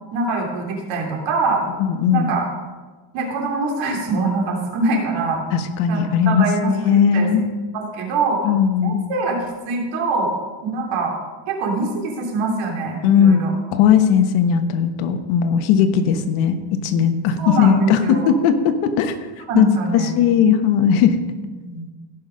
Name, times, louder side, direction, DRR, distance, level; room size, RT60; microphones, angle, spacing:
voice 1, 0.1-1.6 2.1-2.5 3.1-5.4 5.9-7.3 7.7-8.5 8.8-10.3 10.6-11.1 11.5-13.5 17.4-18.3 19.5-20.3 21.7-21.9, right 3 dB, 75° right, 0 dB, 3.2 m, -24 dB
voice 2, 1.8-2.3 5.5-7.4 8.4-9.0 13.0-19.2 19.5-19.7 19.9-21.1, left 7 dB, 90° left, 8 dB, 1.3 m, -17 dB
16.5 x 6.0 x 5.1 m, 1.3 s
cardioid pair, 160°, 46 cm